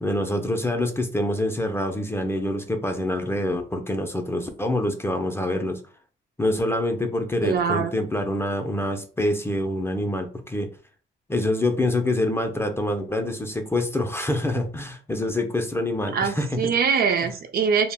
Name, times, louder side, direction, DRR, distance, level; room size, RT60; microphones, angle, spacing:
voice 1, 0.0-5.8 6.4-10.7 11.3-16.7 17.2-17.3, left 1 dB, 10° left, 0.4 m, -26 dB
voice 2, 7.4-7.9 16.1-17.9, right 6 dB, 50° right, 0.5 m, -23 dB
2.0 x 2.0 x 3.4 m
cardioid pair, 90°, 20 cm